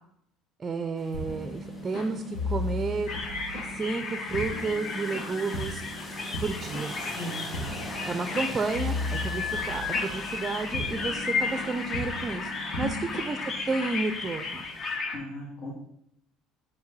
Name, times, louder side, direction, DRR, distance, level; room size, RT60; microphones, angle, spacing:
voice 1, 0.6-3.1 3.7-5.8 6.4-6.9 8.1-12.5 12.8-14.7, right 4 dB, 25° right, 8 dB, 0.4 m, -31 dB
sound 1, 1.0-15.0, left 1 dB, 15° left, 2.0 m, -45 dB
sound 2, 1.1-13.9, left 2 dB, 80° left, 2.0 m, -37 dB
sound 3, 3.1-15.2, left 4 dB, 50° left, 1.0 m, -34 dB
voice 2, 7.0-7.7 12.8-12.9 15.1-15.7, left 1 dB, 65° left, -3 dB, 2.0 m, -37 dB
5.1 x 4.5 x 4.1 m, 0.73 s
supercardioid pair, 100°, 0 cm